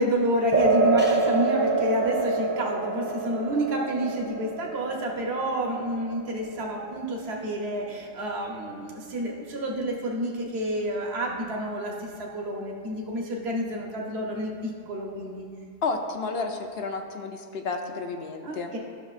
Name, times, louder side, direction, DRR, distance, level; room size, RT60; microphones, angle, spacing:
voice 1, 0.0-15.5 18.4-18.8, equal, 60° right, 0 dB, 1.2 m, -29 dB
sound 1, 0.5-7.5, right 3 dB, 15° right, 0.4 m, -27 dB
voice 2, 15.8-18.7, left 4 dB, 65° left, 4 dB, 0.8 m, -31 dB
12.5 x 6.1 x 2.4 m, 2.2 s
omnidirectional pair, 1.3 m